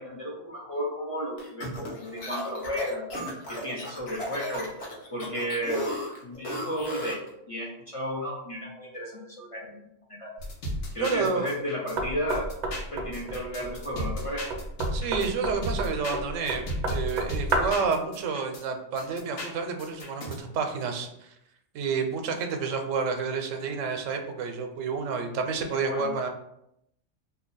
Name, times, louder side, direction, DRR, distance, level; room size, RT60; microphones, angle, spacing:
voice 1, 0.0-3.0 3.5-4.7 5.1-5.9 6.2-7.2 7.5-10.3 10.9-12.5 12.7-14.5 25.7-26.1, equal, 40° left, -4 dB, 0.5 m, -33 dB
sound 1, 1.4-7.3, equal, 60° left, 1.0 m, -35 dB
sound 2, 10.4-12.0 12.3-15.3 15.6-18.6 19.0-20.4, equal, 90° left, 1.2 m, -34 dB
voice 2, 11.0-11.5 14.9-16.6 16.9-21.3 21.7-26.3, right 5 dB, 85° right, 5 dB, 0.9 m, -29 dB
Knock, 12.0-17.9, right 2 dB, 60° right, 0.4 m, -32 dB
2.7 x 2.3 x 3.9 m, 0.79 s
omnidirectional pair, 1.3 m